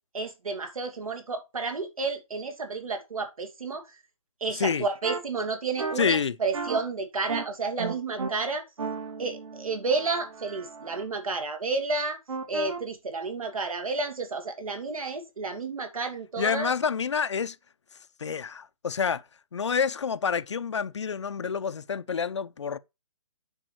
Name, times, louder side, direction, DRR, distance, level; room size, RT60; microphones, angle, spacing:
voice 1, 0.1-3.9 4.4-8.6 9.2-12.2 12.5-16.7, right 3 dB, 75° right, 2.6 m, -31 dB
sound 1, 5.0-5.2 5.8-5.9 6.5-6.8 7.3-7.4 7.8-8.3 8.8-11.0 12.3-12.8, right 4 dB, 55° right, 2.6 m, -34 dB
voice 2, 6.0-6.3 16.4-17.6 18.2-19.2 19.5-22.8, left 6 dB, 55° left, 0.6 m, -28 dB
9.1 x 5.2 x 4.5 m
hypercardioid pair, 175°, 18 cm